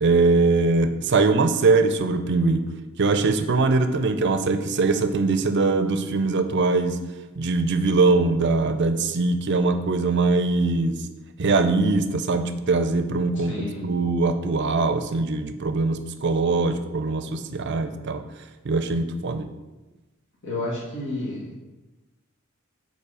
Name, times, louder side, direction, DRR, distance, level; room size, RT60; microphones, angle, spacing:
voice 1, 0.0-2.6 3.0-7.0 7.4-11.0 11.4-18.2 18.6-19.5, right 3 dB, 55° right, 9 dB, 0.5 m, -22 dB
voice 2, 13.4-13.9 20.4-21.5, left 2 dB, 60° left, -5 dB, 1.9 m, -31 dB
5.6 x 4.4 x 4.9 m, 1.1 s
head